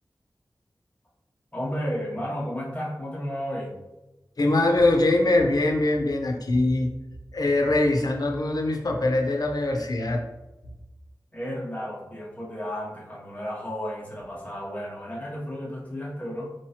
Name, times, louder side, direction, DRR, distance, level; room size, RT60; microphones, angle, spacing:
voice 1, 1.5-3.8 11.3-16.5, equal, 20° left, -4 dB, 1.4 m, -33 dB
voice 2, 4.4-6.9 7.3-10.2, left 2 dB, 70° left, 2 dB, 0.6 m, -22 dB
4.7 x 2.9 x 2.8 m, 1.0 s
wide cardioid pair, 55°, 7 cm